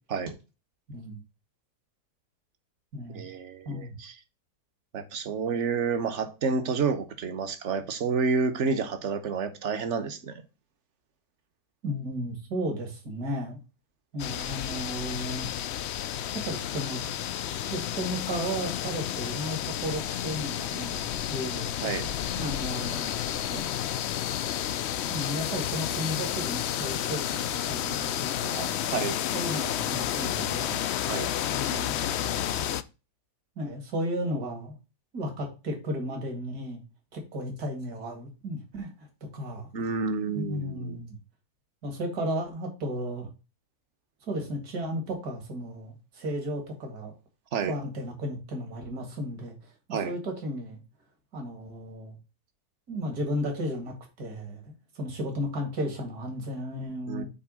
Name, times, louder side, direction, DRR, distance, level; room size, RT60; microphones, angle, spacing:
voice 1, 0.9-1.2 2.9-3.3 3.7-4.0 11.8-13.6 14.1-15.5 16.3-17.1 17.5-21.7 22.4-23.1 23.5-23.6 25.1-28.7 29.3-30.8 31.5-32.7 33.6-34.8 35.1-36.8 37.1-39.7 40.3-41.2 41.8-43.3 44.3-47.1 47.7-50.8 51.3-52.2 52.9-57.2, equal, 65° right, 2.5 m, -34 dB
voice 2, 3.1-4.1 4.9-10.4 21.8-22.1 28.9-29.2 31.1-31.3 39.7-41.0 47.5-47.8 49.9-50.1 57.1-57.2, right 5 dB, 50° right, 1.2 m, -29 dB
sound 1, 14.2-32.8, left 11 dB, 85° left, 0.5 m, -31 dB
8.3 x 3.4 x 6.2 m
omnidirectional pair, 1.7 m